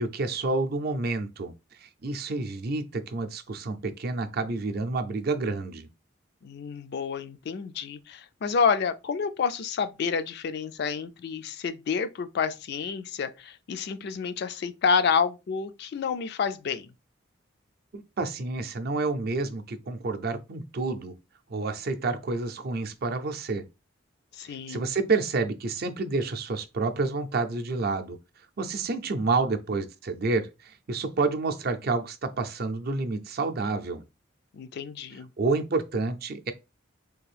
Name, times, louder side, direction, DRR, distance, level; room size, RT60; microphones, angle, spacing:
voice 1, 0.0-1.5 1.8-5.9 17.9-21.1 21.5-23.7 24.5-28.2 28.6-34.0 35.4-36.5, right 3 dB, 50° right, 0.5 m, -29 dB
voice 2, 6.4-16.9 24.3-24.9 34.5-35.3, left 5 dB, 55° left, 0.3 m, -29 dB
3.5 x 2.5 x 3.3 m
head